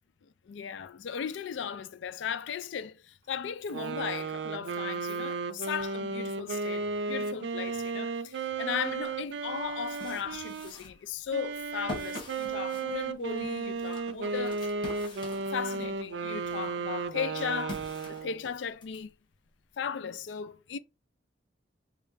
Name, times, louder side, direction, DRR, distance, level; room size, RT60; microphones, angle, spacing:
voice 1, 0.2-14.7 15.5-17.8 18.1-19.1 19.8-20.8, left 7 dB, 85° left, 0.4 m, -36 dB
sound 1, 3.7-10.7 11.3-18.5, right 4 dB, 80° right, 0.4 m, -34 dB
sound 2, 9.6-15.9 16.4-19.0, left 1 dB, 25° left, 1.1 m, -45 dB
4.1 x 2.4 x 3.2 m
head